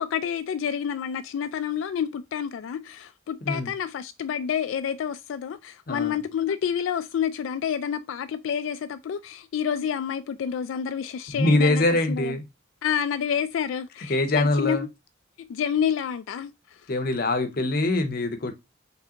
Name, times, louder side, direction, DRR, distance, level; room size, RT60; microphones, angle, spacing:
voice 1, 0.0-12.3 12.8-14.8 15.4-16.5, left 8 dB, 90° left, 0.3 m, -29 dB
voice 2, 5.9-6.2 11.3-12.4 14.1-14.8 16.9-18.5, left 2 dB, 50° left, 0.7 m, -23 dB
4.8 x 3.4 x 2.8 m
head